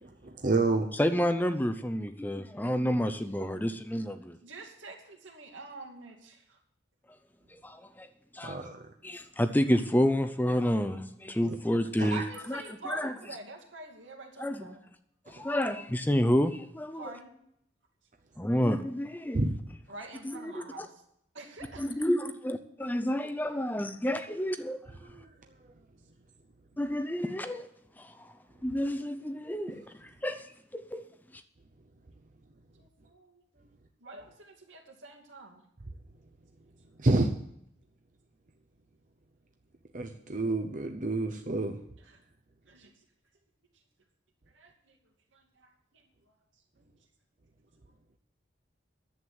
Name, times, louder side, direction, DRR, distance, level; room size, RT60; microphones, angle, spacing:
voice 1, 0.0-0.9 8.4-8.8 11.4-11.6 12.0-12.1 15.4-15.5 19.3-19.5 25.0-25.3 37.0-37.3 39.9-41.8, right 2 dB, 40° right, 5 dB, 0.7 m, -29 dB
voice 2, 1.0-4.4 7.6-8.1 8.3-8.6 9.0-12.2 12.5-13.1 14.4-14.7 15.3-17.0 18.4-19.5 20.2-20.9 21.8-24.8 26.8-27.7 28.0-28.1 28.6-30.4 30.7-31.1, equal, 10° left, 10 dB, 0.5 m, -29 dB
voice 3, 4.4-6.6 12.1-14.8 16.9-17.3 19.9-21.0 21.3-22.4 32.8-33.6 34.0-35.6 42.0-42.2 42.7-42.9 44.5-45.0 45.3-46.0 46.3-46.4 46.8-46.9, right 3 dB, 80° right, 1 dB, 2.5 m, -46 dB
11.0 x 8.0 x 7.9 m, 0.74 s
head